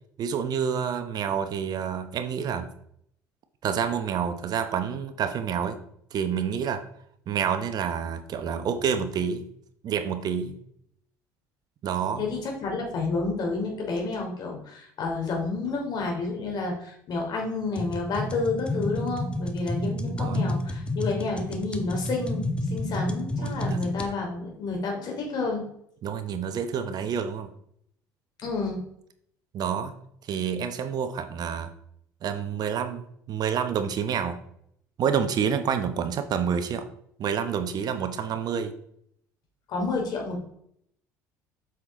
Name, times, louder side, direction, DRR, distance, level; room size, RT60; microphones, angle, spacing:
voice 1, 0.2-2.7 3.6-5.8 6.1-6.8 7.3-9.5 9.8-10.6 11.8-12.2 20.1-20.5 23.4-23.8 26.0-27.5 29.5-30.0 30.2-31.7 32.2-34.4 35.0-36.9 37.2-38.7, right 7 dB, 50° right, 9 dB, 1.0 m, -28 dB
voice 2, 12.2-25.6 28.4-28.8 39.7-40.4, left 3 dB, 55° left, 1 dB, 3.0 m, -30 dB
sound 1, 17.8-24.1, left 1 dB, 10° left, 1.0 m, -30 dB
7.8 x 6.0 x 3.7 m, 0.69 s
hypercardioid pair, 70°, 9 cm